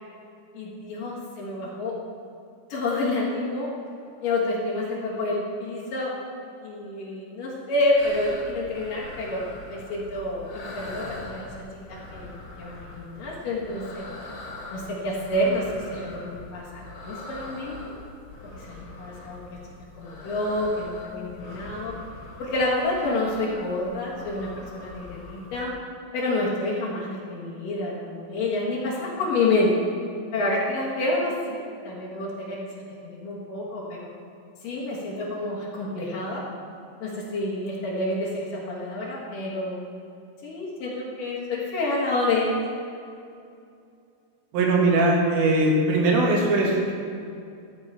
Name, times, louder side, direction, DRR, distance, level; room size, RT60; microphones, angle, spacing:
voice 1, 0.5-1.9 2.7-3.7 4.2-6.1 6.6-11.6 11.9-14.0 14.7-17.9 18.5-19.4 19.9-21.9 22.4-25.7 26.1-29.7 30.3-34.1 34.6-36.4 37.0-39.8 40.4-42.6, left 2 dB, 60° left, -6 dB, 2.8 m, -28 dB
sound 1, 8.0-25.7, left 2 dB, 80° left, 4.1 m, -42 dB
voice 2, 44.5-46.9, right 2 dB, 80° right, -2 dB, 3.9 m, -20 dB
14.0 x 7.6 x 4.8 m, 2.5 s
omnidirectional pair, 5.2 m